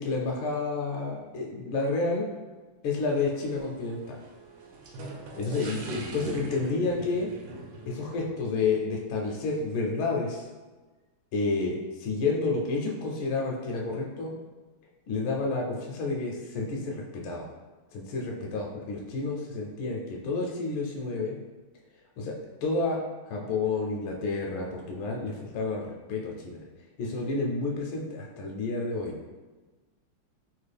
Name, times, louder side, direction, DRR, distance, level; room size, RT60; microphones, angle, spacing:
voice 1, 0.0-2.3 2.8-4.2 5.4-7.3 7.9-10.5 11.3-14.3 15.1-17.5 17.9-21.4 22.2-22.3 22.6-23.0 23.3-26.6 27.0-29.1, left 3 dB, 75° left, -1 dB, 1.3 m, -30 dB
sound 1, 3.0-8.3, right 2 dB, 85° right, 1.5 m, -41 dB
3.6 x 2.3 x 3.3 m, 1.3 s
omnidirectional pair, 2.4 m